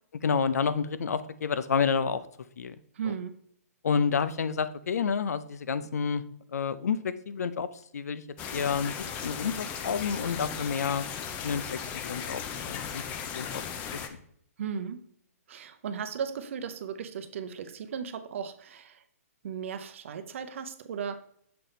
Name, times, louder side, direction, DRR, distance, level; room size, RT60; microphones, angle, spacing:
voice 1, 0.2-2.2 2.6-2.8 3.0-3.1 3.8-6.2 6.5-7.7 7.9-8.2 8.5-11.1 11.4-13.0 13.3-13.6, left 6 dB, 85° left, 14 dB, 0.5 m, -29 dB
voice 2, 3.0-3.3 14.6-15.0 15.5-19.0 19.4-21.2, right 7 dB, 55° right, 9 dB, 0.7 m, -36 dB
sound 1, 8.4-14.1, left 7 dB, 20° left, 0.5 m, -37 dB
6.6 x 4.2 x 3.9 m, 0.66 s
hypercardioid pair, 160°, 8 cm